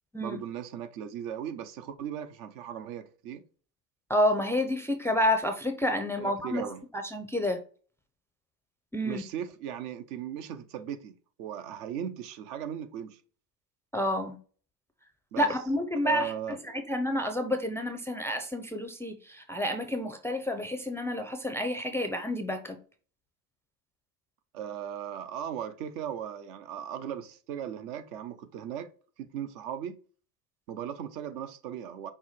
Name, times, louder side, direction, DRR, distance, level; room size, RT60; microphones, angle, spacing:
voice 1, 0.2-3.4 6.2-6.8 9.0-13.2 15.3-15.5 16.0-16.6 24.5-28.9 29.2-30.0 30.7-32.1, right 9 dB, 70° right, 0.8 m, -37 dB
voice 2, 4.1-6.7 7.1-7.6 8.9-9.2 13.9-14.4 15.4-16.3 16.7-22.8, left 1 dB, 5° left, 0.4 m, -29 dB
5.8 x 2.2 x 4.2 m
hypercardioid pair, 85°, 50 cm